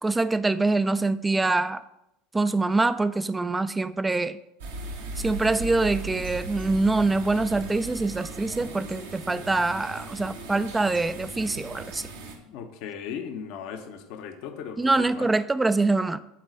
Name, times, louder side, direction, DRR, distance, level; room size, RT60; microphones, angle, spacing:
voice 1, 0.0-1.8 2.3-4.4 5.2-12.1 14.8-16.2, right 3 dB, 15° right, 13 dB, 0.5 m, -24 dB
sound 1, 4.6-12.4, right 3 dB, 75° right, 1.4 m, -38 dB
voice 2, 12.4-15.3, left 7 dB, 60° left, 7 dB, 0.9 m, -37 dB
8.8 x 4.1 x 6.3 m, 0.85 s
hypercardioid pair, 75°, 0 cm